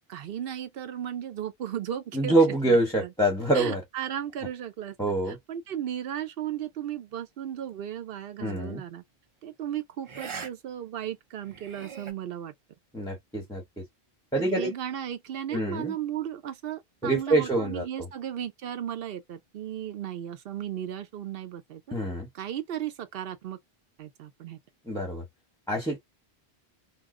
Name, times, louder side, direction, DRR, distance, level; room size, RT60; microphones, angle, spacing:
voice 1, 0.1-2.4 2.7-3.1 3.5-5.0 5.3-9.0 9.4-12.5 14.4-21.8 22.3-23.6 24.0-24.6, right 10 dB, 65° right, 0.8 m, -35 dB
voice 2, 2.1-3.8 5.0-5.4 8.4-8.8 12.9-13.8 14.3-14.7 15.5-16.0 17.0-17.9 21.9-22.3 24.9-25.2 25.7-26.0, right 2 dB, 5° left, 0.8 m, -25 dB
sound 1, 8.5-8.7 10.0-10.5 10.8-10.9 11.4-12.1, right 5 dB, 35° right, 0.5 m, -40 dB
2.8 x 2.1 x 3.6 m
omnidirectional pair, 1.1 m